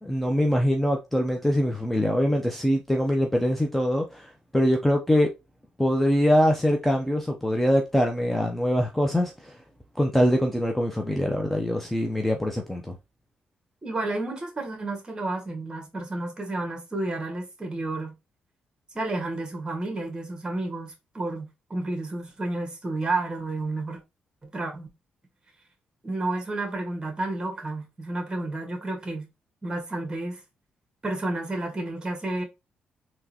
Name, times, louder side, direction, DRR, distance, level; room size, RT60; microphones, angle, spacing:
voice 1, 0.0-5.3 5.8-9.5 10.0-13.0, equal, 5° left, 0.6 m, -23 dB
voice 2, 13.8-18.1 18.9-24.0 24.4-24.9 26.0-29.3 29.6-30.4 31.0-32.4, right 2 dB, 25° right, 1.6 m, -31 dB
3.7 x 3.0 x 2.8 m
cardioid pair, 75°, 3 cm